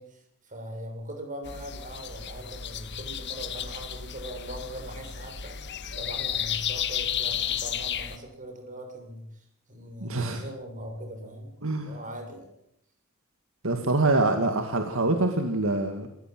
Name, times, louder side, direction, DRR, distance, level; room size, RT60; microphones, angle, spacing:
voice 1, 0.0-5.6 6.0-11.5 11.8-12.5, right 1 dB, 40° right, 4 dB, 7.0 m, -40 dB
sound 1, 1.4-8.2, left 9 dB, 55° left, 1.6 m, -33 dB
voice 2, 10.0-10.4 11.6-11.9 13.6-16.1, right 2 dB, 70° right, 5 dB, 2.2 m, -25 dB
27.0 x 15.5 x 7.9 m, 0.73 s
head